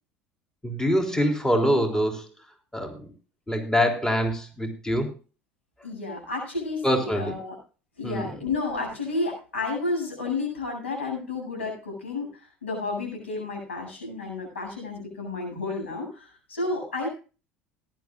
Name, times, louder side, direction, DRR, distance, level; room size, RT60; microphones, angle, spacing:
voice 1, 0.6-2.3 2.7-3.1 3.5-5.1 6.8-7.3 8.0-8.3, equal, 10° left, 3 dB, 3.7 m, -24 dB
voice 2, 5.8-7.5 8.0-17.1, left 3 dB, 90° left, 2 dB, 7.8 m, -31 dB
18.5 x 11.5 x 2.5 m, 0.35 s
hypercardioid pair, 70°, 6 cm